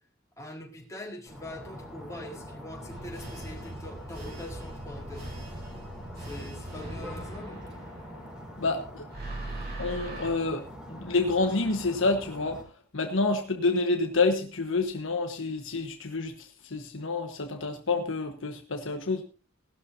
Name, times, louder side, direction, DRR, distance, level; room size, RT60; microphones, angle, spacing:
voice 1, 0.4-5.3 6.2-7.7, left 1 dB, 15° left, -1 dB, 4.4 m, -43 dB
sound 1, 1.3-12.6, equal, 5° right, 4.8 m, -44 dB
sound 2, 2.9-8.7 9.1-10.3, right 1 dB, 50° right, 6.6 m, -41 dB
voice 2, 8.6-9.1 9.8-12.6 12.9-19.2, left 3 dB, 65° left, 5 dB, 1.4 m, -28 dB
18.5 x 12.5 x 2.7 m, 0.35 s
head